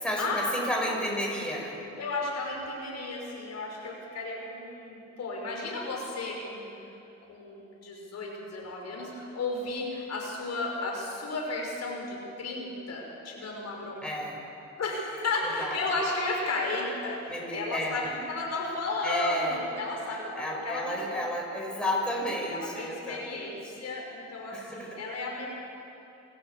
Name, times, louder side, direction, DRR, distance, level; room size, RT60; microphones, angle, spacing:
voice 1, 0.0-1.8 14.0-14.4 15.6-15.7 17.3-18.1 19.0-19.5 20.4-23.5 24.5-25.0, equal, 5° left, -2 dB, 6.6 m, -32 dB
voice 2, 2.0-6.7 7.3-14.2 14.8-21.2 22.5-25.5, left 2 dB, 60° left, 0 dB, 6.0 m, -34 dB
27.0 x 15.0 x 8.4 m, 2.8 s
cardioid pair, 90°, 30 cm